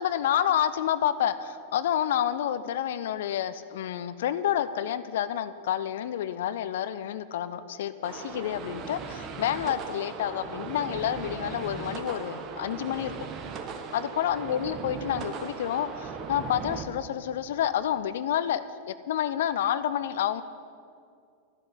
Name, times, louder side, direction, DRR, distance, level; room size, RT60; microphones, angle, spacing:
voice 1, 0.0-13.2 13.9-20.4, left 10 dB, 55° left, 14 dB, 0.5 m, -29 dB
sound 1, 8.0-16.8, right 5 dB, 30° right, 1.3 m, -38 dB
12.5 x 7.8 x 10.0 m, 2.4 s
figure-of-eight pair, 90°, 0 cm